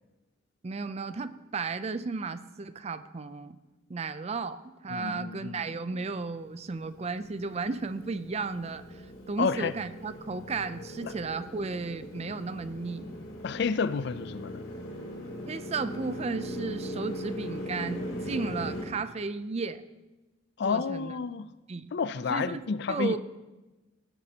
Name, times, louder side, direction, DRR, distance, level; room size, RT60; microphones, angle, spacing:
voice 1, 0.6-3.6 3.9-9.0 9.3-13.1 15.5-19.8 20.6-21.1 21.7-21.9 22.3-23.2, right 4 dB, 35° right, 0.4 m, -34 dB
voice 2, 4.9-5.6 9.4-9.7 11.0-11.1 13.4-14.6 20.6-21.5 21.9-23.2, left 5 dB, 55° left, 0.4 m, -30 dB
Motorcycle, 6.2-18.9, equal, 80° left, 2.5 m, -40 dB
16.5 x 11.5 x 2.8 m
head